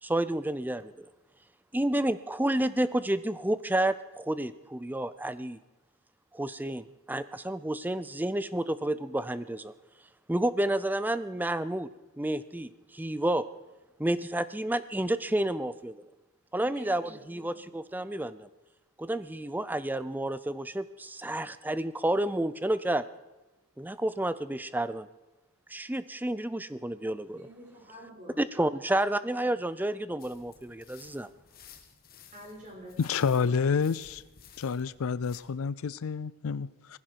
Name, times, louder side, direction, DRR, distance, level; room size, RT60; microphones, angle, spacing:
voice 1, 0.0-1.1 1.7-5.6 6.3-9.7 10.3-11.9 12.2-13.5 14.0-16.1 16.5-18.5 19.0-23.1 23.8-25.1 25.7-27.5 28.4-31.3, right 1 dB, 10° right, 15 dB, 0.4 m, -30 dB
voice 2, 16.6-17.6 27.3-28.4 32.3-33.2, equal, 35° right, -1 dB, 5.1 m, -48 dB
sound 1, 30.2-35.4, left 7 dB, 40° left, 1.8 m, -55 dB
voice 3, 33.0-34.2 34.6-37.0, left 5 dB, 70° left, 18 dB, 0.4 m, -29 dB
19.5 x 15.5 x 4.6 m, 1.1 s
head